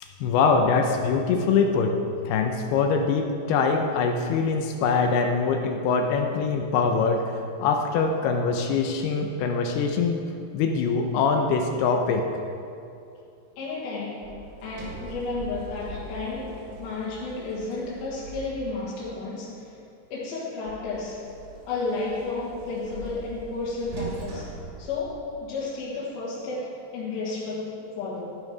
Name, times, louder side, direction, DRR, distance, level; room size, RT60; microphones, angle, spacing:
voice 1, 0.2-2.0 2.3-7.3 7.6-10.2 10.5-12.3, left 5 dB, 85° left, 4 dB, 2.3 m, -23 dB
voice 2, 13.6-14.3 14.6-19.7 20.1-21.3 21.7-24.5 24.8-28.4, left 3 dB, 65° left, -7 dB, 3.0 m, -32 dB
Sliding door, 14.2-19.1 20.7-25.6, right 2 dB, 90° right, 4.5 m, -41 dB
13.0 x 7.8 x 4.8 m, 2.6 s
omnidirectional pair, 5.4 m